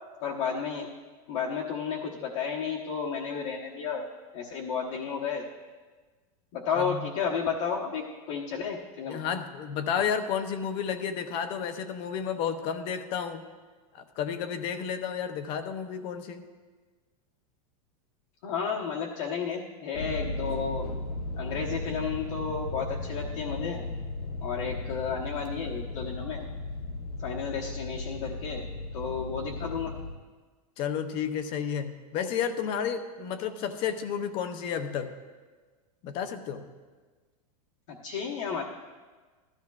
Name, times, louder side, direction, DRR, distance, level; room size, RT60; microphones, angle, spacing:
voice 1, 0.2-0.9 1.3-4.0 4.3-5.5 6.5-9.2 18.4-20.9 21.4-23.8 24.4-26.4 27.2-28.7 28.9-29.9 37.9-38.6, left 6 dB, 55° left, -3 dB, 1.1 m, -32 dB
voice 2, 9.1-13.4 13.9-16.5 30.8-35.1 36.0-36.6, left 7 dB, 25° left, 9 dB, 0.6 m, -31 dB
sound 1, 19.9-30.1, left 2 dB, 85° left, 1.1 m, -36 dB
14.5 x 13.0 x 2.4 m, 1.4 s
supercardioid pair, 170°, 19 cm